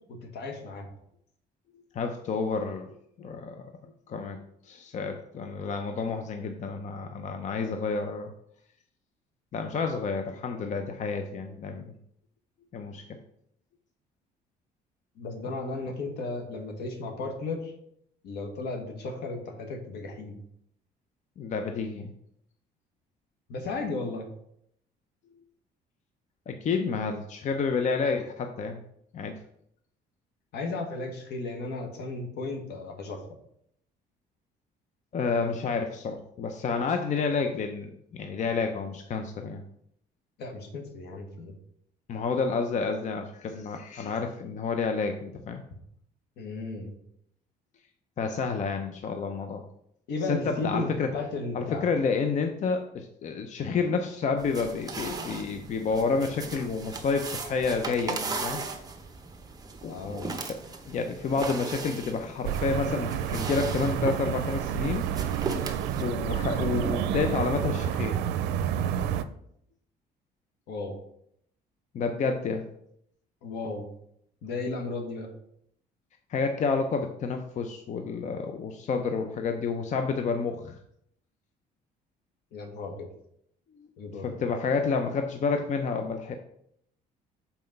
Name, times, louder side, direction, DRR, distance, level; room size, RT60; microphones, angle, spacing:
voice 1, 0.1-0.9 15.1-17.7 18.2-20.4 23.5-24.2 30.5-33.2 40.4-41.5 46.4-46.9 50.1-51.8 59.9-60.3 70.7-70.9 73.4-73.9 74.4-75.3 82.5-83.1 84.0-84.5, left 3 dB, 75° left, 3 dB, 1.6 m, -34 dB
voice 2, 1.7-3.6 4.1-8.3 9.5-11.9 12.7-13.2 21.4-22.1 26.5-28.8 29.1-29.3 35.1-39.6 42.1-45.6 48.2-49.6 50.2-51.1 51.5-58.6 59.8-59.9 60.2-60.3 60.9-65.1 66.0-68.2 71.9-72.7 76.3-80.8 83.7-83.9 84.2-86.4, left 4 dB, 45° left, 6 dB, 0.7 m, -29 dB
sound 1, 54.4-66.0, right 3 dB, 20° right, 1.0 m, -38 dB
sound 2, 62.4-69.2, right 9 dB, 90° right, 0.5 m, -29 dB
5.9 x 4.3 x 5.3 m, 0.72 s
cardioid pair, 110°, 17 cm